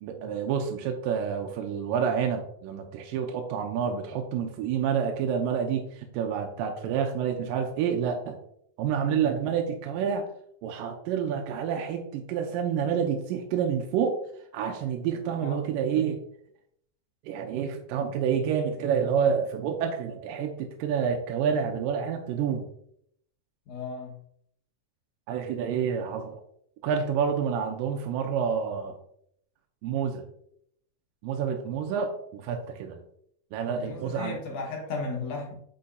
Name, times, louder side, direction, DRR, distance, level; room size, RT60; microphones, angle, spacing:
voice 1, 0.0-8.4 8.8-10.3 10.6-14.2 14.5-16.2 17.2-22.7 25.3-26.4 26.8-29.0 29.8-30.2 31.2-33.0 33.5-34.4, right 7 dB, 85° right, 3 dB, 2.4 m, -28 dB
voice 2, 23.7-24.2 33.8-35.5, left 3 dB, 65° left, -1 dB, 2.8 m, -35 dB
8.6 x 5.5 x 2.7 m, 0.69 s
omnidirectional pair, 3.9 m